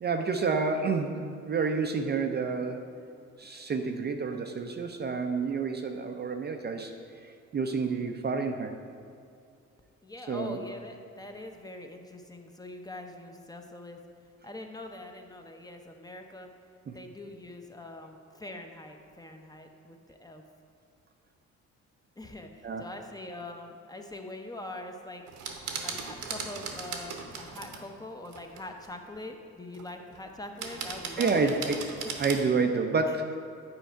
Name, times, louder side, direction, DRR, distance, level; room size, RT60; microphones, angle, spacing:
voice 1, 0.0-2.9 3.4-6.9 7.2-8.8 10.3-10.6 16.9-17.0 22.6-22.8 31.2-31.8 32.2-33.4, right 4 dB, 35° right, 5 dB, 0.5 m, -29 dB
voice 2, 10.0-14.0 14.4-16.5 16.9-20.4 22.2-25.2 25.8-31.6 32.0-32.1 33.1-33.2, left 2 dB, 15° left, 4 dB, 0.7 m, -43 dB
sound 1, 25.3-27.8 28.3-28.9 29.7-30.2 30.6-32.5, right 5 dB, 75° right, 1.0 m, -38 dB
9.0 x 4.6 x 4.5 m, 2.4 s
cardioid pair, 90°, 30 cm